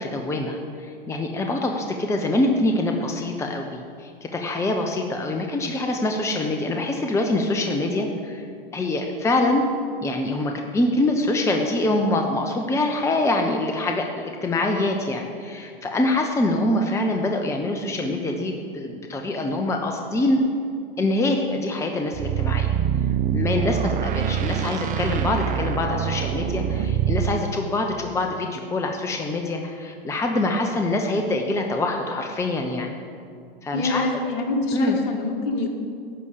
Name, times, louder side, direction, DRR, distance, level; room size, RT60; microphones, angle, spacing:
voice 1, 0.0-8.5 8.7-9.6 10.0-20.4 21.0-22.7 23.0-32.9 33.6-34.1 34.7-35.0, left 2 dB, 10° left, 3 dB, 0.8 m, -25 dB
sound 1, 22.1-27.4, right 9 dB, 25° right, 0.7 m, -24 dB
voice 2, 33.7-35.7, left 2 dB, 55° left, 2 dB, 2.2 m, -25 dB
11.0 x 6.4 x 8.6 m, 2.3 s
hypercardioid pair, 110°, 29 cm